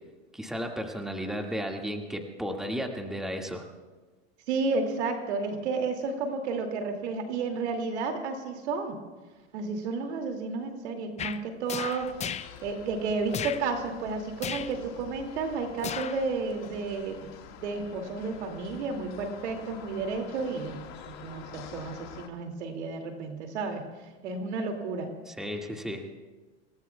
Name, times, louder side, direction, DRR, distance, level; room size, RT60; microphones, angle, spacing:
voice 1, 0.3-3.7 25.3-26.0, equal, ahead, 2 dB, 1.9 m, -34 dB
voice 2, 4.5-9.0 9.5-12.1 12.6-23.8 24.2-25.1, right 4 dB, 75° right, 4 dB, 2.5 m, -32 dB
sound 1, 11.2-11.4 11.7-12.5 13.3-13.6 14.4-14.7 15.8-16.2 16.6-16.7, left 8 dB, 20° left, 0.5 m, -35 dB
sound 2, 12.0-22.3, left 8 dB, 50° left, 1.8 m, -47 dB
27.0 x 18.0 x 2.3 m, 1.2 s
hypercardioid pair, 100°, 34 cm